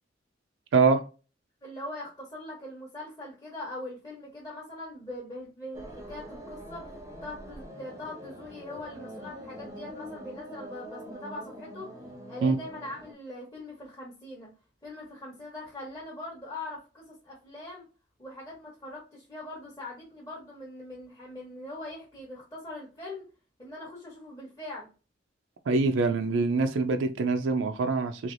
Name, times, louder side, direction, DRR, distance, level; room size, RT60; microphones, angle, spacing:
voice 1, 0.7-1.0 12.4-12.6 25.7-28.3, right 4 dB, 80° right, 0.4 m, -24 dB
voice 2, 1.6-6.9 7.2-11.9 12.3-14.5 14.8-17.8 18.2-23.2 23.6-24.9, left 1 dB, 20° left, 1.0 m, -41 dB
sound 1, 5.7-13.1, equal, 15° right, 0.6 m, -44 dB
3.2 x 2.9 x 2.5 m
head